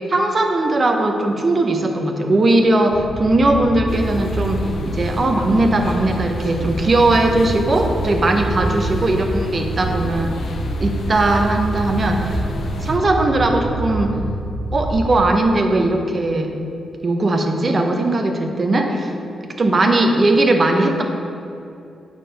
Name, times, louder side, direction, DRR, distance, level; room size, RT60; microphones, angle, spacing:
voice 1, 0.1-10.3 10.8-12.4 12.8-14.1 14.7-16.5 17.0-19.1 19.6-21.0, right 2 dB, 30° right, 3 dB, 0.6 m, -18 dB
sound 1, 2.9-15.3, right 2 dB, 75° right, 0.7 m, -27 dB
sound 2, 3.9-13.0, left 2 dB, 50° left, 0.5 m, -31 dB
7.2 x 4.3 x 5.1 m, 2.6 s
wide cardioid pair, 160°, 0 cm